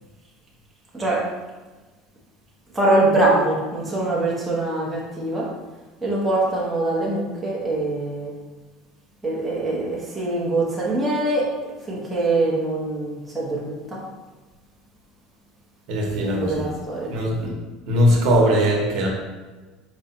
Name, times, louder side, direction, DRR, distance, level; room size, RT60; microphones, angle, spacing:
voice 1, 2.7-5.5 6.0-8.3 9.2-11.4 11.9-14.0 16.2-17.1, right 2 dB, 5° right, -6 dB, 0.8 m, -23 dB
voice 2, 15.9-16.7 17.1-17.5 17.9-19.1, equal, 55° right, -1 dB, 0.9 m, -20 dB
4.9 x 2.3 x 4.2 m, 1.2 s
cardioid pair, 170°, 0 cm